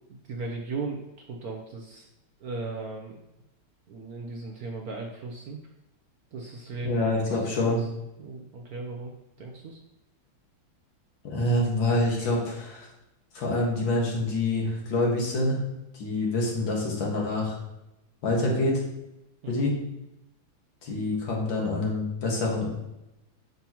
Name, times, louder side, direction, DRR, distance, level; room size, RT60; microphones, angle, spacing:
voice 1, 0.3-2.1 2.4-3.1 3.9-5.6 6.3-7.0 7.3-7.9 8.2-9.1 9.4-9.8 19.4-19.7, right 3 dB, 60° right, 1 dB, 1.0 m, -36 dB
voice 2, 6.8-7.8 11.2-12.9 13.3-15.6 15.9-17.6 18.2-18.8 19.5-19.7 20.8-22.7, left 2 dB, 70° left, -2 dB, 2.3 m, -26 dB
8.9 x 5.6 x 3.0 m, 0.93 s
omnidirectional pair, 2.2 m